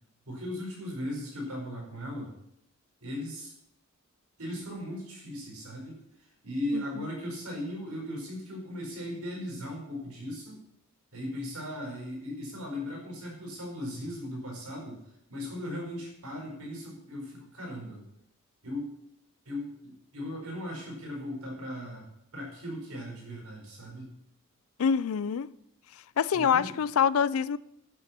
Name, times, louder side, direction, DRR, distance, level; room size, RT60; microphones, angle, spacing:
voice 1, 0.3-2.3 3.0-3.5 4.4-10.6 11.1-15.0 15.3-18.0 18.6-18.9 19.4-22.0 22.3-24.1 26.3-26.7, left 1 dB, 80° right, 4.7 m, -37 dB
voice 2, 6.7-7.1 24.8-25.5 26.2-27.6, left 7 dB, 70° left, 0.4 m, -26 dB
10.0 x 8.6 x 5.9 m
head